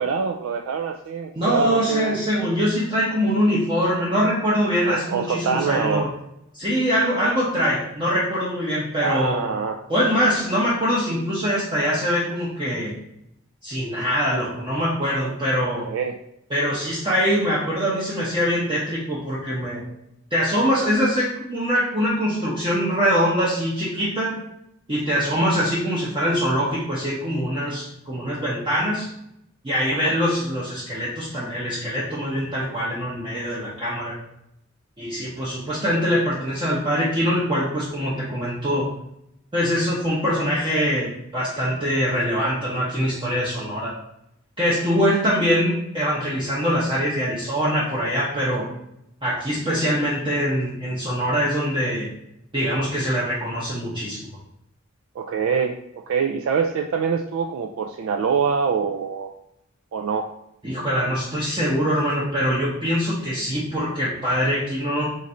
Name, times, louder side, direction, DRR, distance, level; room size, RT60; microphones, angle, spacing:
voice 1, 0.0-2.1 4.9-6.1 9.0-9.9 15.9-16.2 29.9-30.1 55.2-59.3 59.9-60.3, right 6 dB, 80° right, 4 dB, 0.3 m, -25 dB
voice 2, 1.3-6.1 6.5-9.4 9.9-12.9 13.6-15.9 16.5-19.8 20.3-24.4 24.9-29.1 29.6-34.1 35.0-38.9 39.5-43.9 44.6-48.7 49.2-52.1 52.5-54.3 60.6-65.1, equal, 25° right, -8 dB, 0.8 m, -23 dB
4.1 x 2.6 x 4.2 m, 0.80 s
head